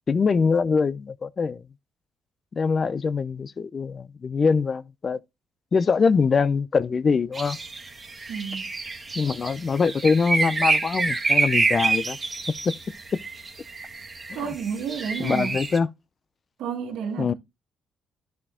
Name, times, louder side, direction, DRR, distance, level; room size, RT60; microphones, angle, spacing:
voice 1, 0.1-1.6 2.6-5.2 5.7-7.6 9.2-12.2 12.6-12.7 14.3-14.4 15.2-15.9 17.2-17.3, left 5 dB, 40° left, 0.6 m, -23 dB
sound 1, 7.3-15.8, right 3 dB, 30° right, 1.9 m, -27 dB
voice 2, 8.3-8.6 14.3-15.7 16.6-17.3, right 7 dB, 80° right, 1.7 m, -31 dB
11.0 x 4.5 x 3.6 m
cardioid pair, 90°, 0 cm